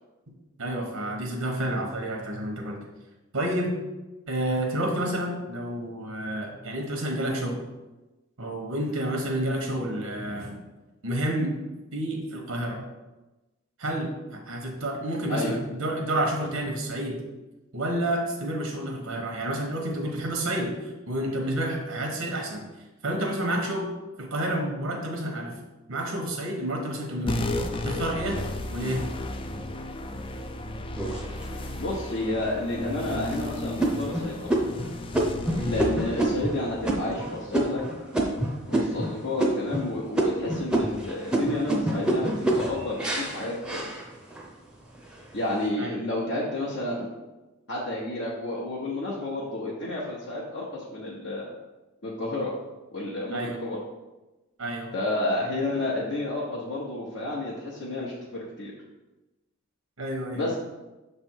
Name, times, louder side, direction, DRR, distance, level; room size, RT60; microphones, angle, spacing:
voice 1, 0.6-2.8 3.3-3.8 4.3-7.6 8.4-10.6 11.0-11.5 11.9-12.8 13.8-17.2 17.7-22.6 23.0-23.9 24.2-25.6 25.9-27.5 27.8-28.4 28.7-29.0 35.6-35.8 38.7-39.0 45.8-46.0 53.3-53.6 54.6-54.9 60.0-60.5, right 1 dB, 80° right, 1 dB, 1.1 m, -29 dB
sound 1, 27.3-38.1, left 1 dB, 25° left, 0.4 m, -34 dB
sound 2, 31.0-31.8 32.4-32.5 33.0-33.3 33.8-39.1 39.4-39.9 40.1-44.5 44.9-45.5, right 1 dB, 5° right, 0.7 m, -27 dB
voice 2, 31.8-34.7 35.6-37.8 38.7-43.9 45.3-47.1 47.7-51.5 52.0-52.5 52.9-53.8 54.9-58.7 60.3-60.5, left 2 dB, 60° left, -6 dB, 1.1 m, -31 dB
6.5 x 3.4 x 4.6 m, 1.1 s
head